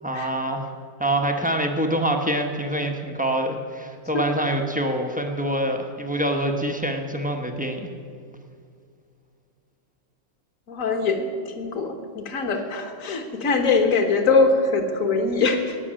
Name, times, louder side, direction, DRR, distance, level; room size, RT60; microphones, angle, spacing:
voice 1, 0.0-0.7 1.0-7.9, right 1 dB, 10° right, 3 dB, 0.6 m, -25 dB
voice 2, 10.7-15.8, left 4 dB, 45° left, 5 dB, 1.6 m, -22 dB
18.0 x 6.2 x 8.8 m, 2.2 s
omnidirectional pair, 2.1 m